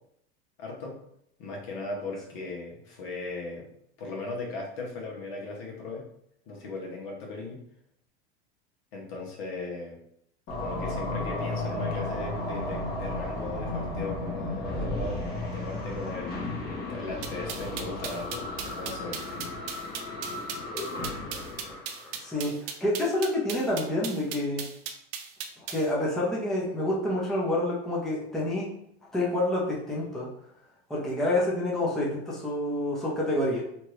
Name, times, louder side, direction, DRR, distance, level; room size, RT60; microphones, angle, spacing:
voice 1, 0.6-0.9 1.4-3.7 4.0-6.0 6.5-7.6 8.9-10.0 10.6-15.2 15.5-16.5 16.9-19.6, left 3 dB, 65° left, -1 dB, 1.1 m, -37 dB
sound 1, 10.5-22.5, left 2 dB, 30° left, 1.0 m, -34 dB
sound 2, 17.2-25.9, right 8 dB, 70° right, 0.6 m, -37 dB
voice 2, 22.2-24.6 25.7-28.6 29.1-30.3 30.9-33.6, left 1 dB, ahead, -5 dB, 0.6 m, -28 dB
2.9 x 2.4 x 3.2 m, 0.73 s
supercardioid pair, 130°, 31 cm